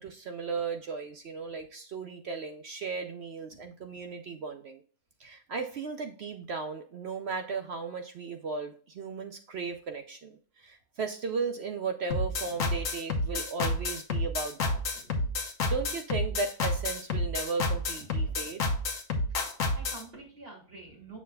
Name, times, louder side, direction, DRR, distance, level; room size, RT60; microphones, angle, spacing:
voice 1, 0.0-4.8 5.2-14.8 15.6-18.7, right 4 dB, 60° right, 6 dB, 0.7 m, -36 dB
sound 1, 12.1-20.0, left 2 dB, 65° left, 1.3 m, -29 dB
voice 2, 14.9-15.3 18.0-18.5 19.7-21.2, right 3 dB, 40° right, -3 dB, 2.9 m, -48 dB
7.0 x 6.1 x 2.3 m, 0.41 s
omnidirectional pair, 1.6 m